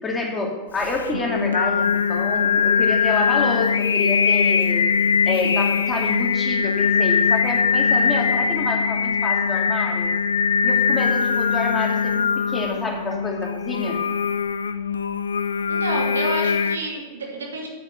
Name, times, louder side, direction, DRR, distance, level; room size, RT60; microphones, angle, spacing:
voice 1, 0.0-4.8 5.2-10.1 10.6-14.0, left 2 dB, 15° left, -2 dB, 2.8 m, -28 dB
Singing, 0.8-16.8, left 6 dB, 70° left, 0.4 m, -21 dB
voice 2, 15.7-17.7, right 2 dB, 70° right, 0 dB, 2.5 m, -29 dB
9.4 x 8.5 x 6.8 m, 1.2 s
figure-of-eight pair, 90°, 0 cm